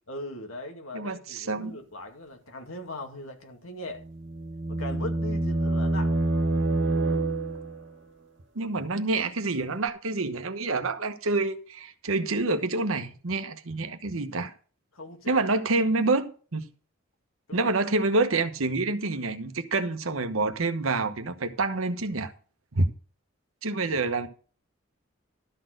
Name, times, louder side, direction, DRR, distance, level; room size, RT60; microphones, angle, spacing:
voice 1, 0.1-4.0 4.7-6.1 14.9-15.4 17.5-17.7, left 1 dB, 85° left, 2.0 m, -39 dB
voice 2, 0.9-1.7 8.5-14.5 15.3-16.6 17.5-22.3 22.7-22.9 23.6-24.3, right 3 dB, 85° right, 1.1 m, -27 dB
sound 1, 4.0-7.9, right 2 dB, 60° right, 1.9 m, -27 dB
12.5 x 4.3 x 7.7 m
head